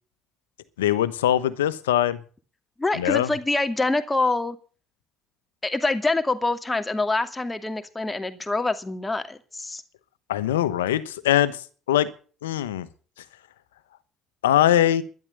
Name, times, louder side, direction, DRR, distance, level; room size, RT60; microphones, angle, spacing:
voice 1, 0.8-2.2 3.0-3.3 10.3-11.6 11.9-12.1 12.4-12.9 14.4-15.0, left 12 dB, 90° left, 15 dB, 1.0 m, -21 dB
voice 2, 2.8-4.6 5.6-9.8, left 2 dB, 20° left, 8 dB, 2.3 m, -25 dB
12.0 x 11.0 x 7.8 m, 0.41 s
hypercardioid pair, 55°, 0 cm